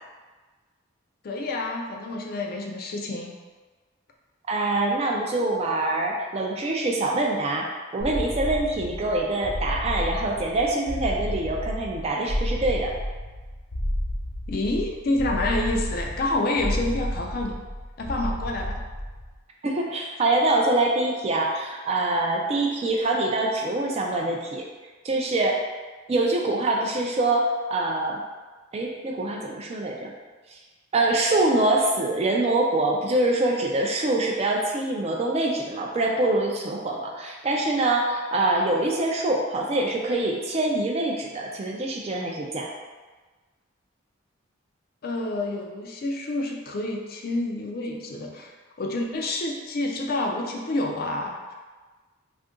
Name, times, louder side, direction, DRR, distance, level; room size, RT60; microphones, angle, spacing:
voice 1, 1.2-3.3 14.5-17.6 18.0-18.8 45.0-48.5 48.8-51.5, left 2 dB, 45° left, 1 dB, 0.4 m, -28 dB
voice 2, 4.5-12.9 19.6-24.6 25.0-25.6 26.1-28.2 28.7-30.1 30.5-30.6 30.9-42.7, right 2 dB, 30° right, 0 dB, 0.3 m, -24 dB
sound 1, 8.0-19.4, equal, 75° left, 0.9 m, -31 dB
2.6 x 2.5 x 3.6 m, 1.3 s
head